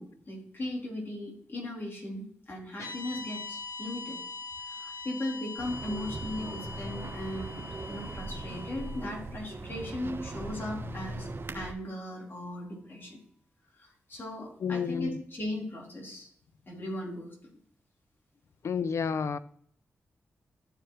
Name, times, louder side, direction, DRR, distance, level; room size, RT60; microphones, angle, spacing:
voice 1, 0.0-4.2 4.6-13.2 13.7-16.3 16.7-17.4, left 1 dB, 45° left, 4.0 m, -38 dB
sound 1, 2.8-11.1, left 4 dB, 85° left, 1.8 m, -43 dB
sound 2, 5.6-11.7, right 2 dB, 50° right, 1.1 m, -39 dB
voice 2, 14.6-15.2 18.6-19.4, left 6 dB, 65° left, 0.4 m, -30 dB
13.5 x 4.6 x 3.2 m
supercardioid pair, 45°, 5 cm